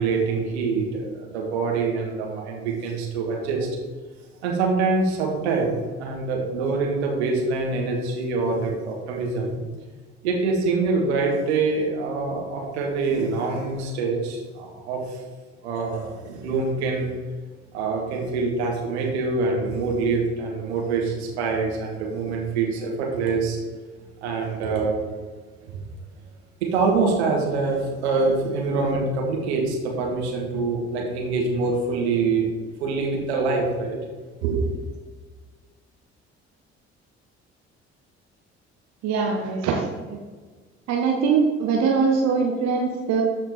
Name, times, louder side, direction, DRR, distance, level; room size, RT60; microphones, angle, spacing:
voice 1, 0.0-3.7 4.4-9.6 10.2-15.2 15.6-17.1 17.7-23.6 24.2-25.0 25.6-25.7 26.6-32.5 32.8-34.0 34.4-34.6, right 4 dB, 70° right, 0 dB, 1.7 m, -25 dB
voice 2, 39.0-40.2 40.9-43.2, right 5 dB, 50° right, 1 dB, 1.1 m, -22 dB
13.0 x 4.4 x 4.3 m, 1.4 s
figure-of-eight pair, 45°, 34 cm